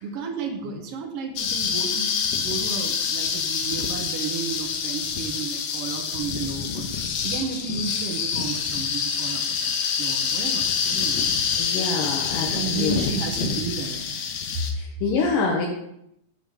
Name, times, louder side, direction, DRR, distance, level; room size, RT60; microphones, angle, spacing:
voice 1, 0.0-2.1 2.4-6.9 7.2-9.7 10.0-11.2 12.5-14.3, right 5 dB, 70° right, 4 dB, 1.5 m, -32 dB
sound 1, 1.4-14.7, left 6 dB, 70° left, 1.8 m, -26 dB
voice 2, 11.6-12.9 14.7-15.7, left 4 dB, 90° left, -1 dB, 2.6 m, -26 dB
6.9 x 5.6 x 6.2 m, 0.78 s
omnidirectional pair, 3.8 m